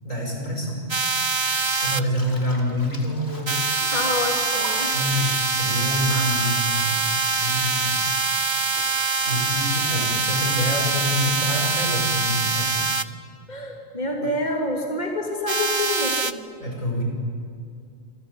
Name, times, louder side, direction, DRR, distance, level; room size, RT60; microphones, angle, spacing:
voice 1, 0.0-0.8 1.8-3.6 4.9-8.2 9.2-12.9 14.2-14.3 16.6-17.0, equal, 85° left, 1 dB, 6.8 m, -27 dB
sound 1, 0.9-2.0 3.5-13.0 15.5-16.3, right 4 dB, 30° right, 0.6 m, -24 dB
Bathtub (filling or washing), 1.4-7.2 7.5-11.1, left 1 dB, 50° left, 3.5 m, -43 dB
voice 2, 3.9-4.9 13.5-16.4, left 2 dB, 35° left, 2 dB, 2.9 m, -27 dB
27.5 x 25.0 x 8.6 m, 2.3 s
omnidirectional pair, 1.3 m